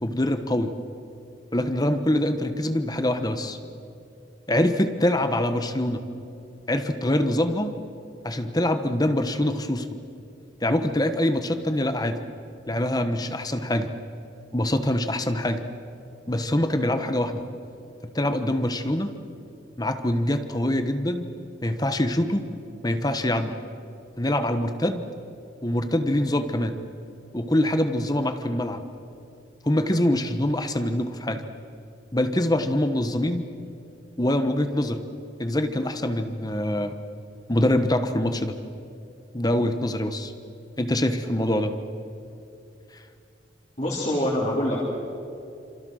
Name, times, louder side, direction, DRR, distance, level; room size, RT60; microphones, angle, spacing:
voice 1, 0.0-0.7 1.5-3.6 4.5-6.0 6.7-7.7 8.2-9.9 10.6-12.2 12.7-13.9 14.5-15.6 16.3-17.4 18.1-19.1 19.8-21.3 21.6-22.4 22.8-23.5 24.2-25.1 25.6-26.7 27.3-28.8 29.6-31.4 32.1-33.5 34.2-35.0 35.4-36.9 37.5-38.5 39.3-40.3 40.8-41.7, left 1 dB, 20° left, 8 dB, 1.2 m, -24 dB
voice 2, 43.8-44.9, left 1 dB, 40° left, -6 dB, 3.9 m, -25 dB
28.5 x 27.0 x 6.5 m, 2.7 s
head